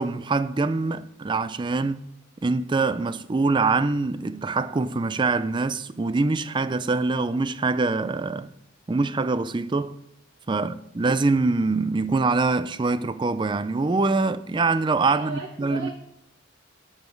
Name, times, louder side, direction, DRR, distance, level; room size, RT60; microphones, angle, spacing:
voice 1, 0.0-2.0 2.4-8.5 8.9-10.0 10.5-15.9, right 3 dB, 25° right, 0.4 m, -24 dB
voice 2, 10.5-10.8 15.1-15.9, right 2 dB, 55° right, 1.1 m, -38 dB
9.6 x 7.3 x 4.6 m
head